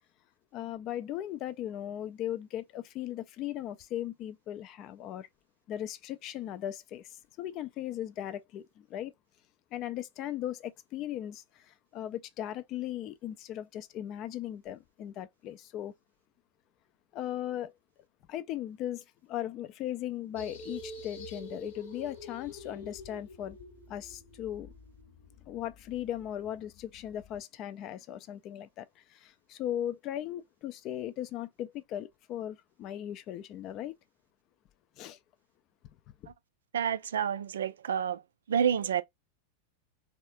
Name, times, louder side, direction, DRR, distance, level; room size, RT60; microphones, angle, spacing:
voice 1, 0.5-5.3 5.7-9.1 9.7-15.9 17.1-17.7 18.3-23.6 23.9-24.7 25.5-33.9 35.0-35.2, left 11 dB, 35° left, 0.4 m, -38 dB
sound 1, 20.4-27.4, left 1 dB, 55° left, 0.8 m, -48 dB
voice 2, 36.7-38.2 38.5-39.0, right 8 dB, 65° right, 0.3 m, -29 dB
3.5 x 2.4 x 2.5 m
figure-of-eight pair, 90°, 0 cm